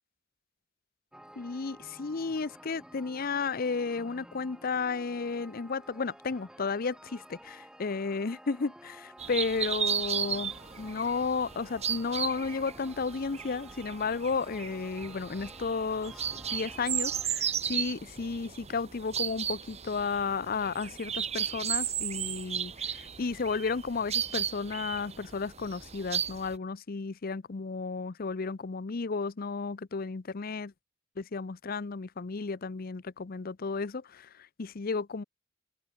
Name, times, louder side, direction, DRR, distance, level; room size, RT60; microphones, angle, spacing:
sound 1, 1.1-17.3, equal, 5° right, 6.5 m, -52 dB
voice 1, 1.4-16.2 16.5-30.7 31.2-35.2, left 4 dB, 45° left, 0.6 m, -33 dB
sound 2, 9.2-26.5, right 8 dB, 30° right, 1.9 m, -35 dB
open air
head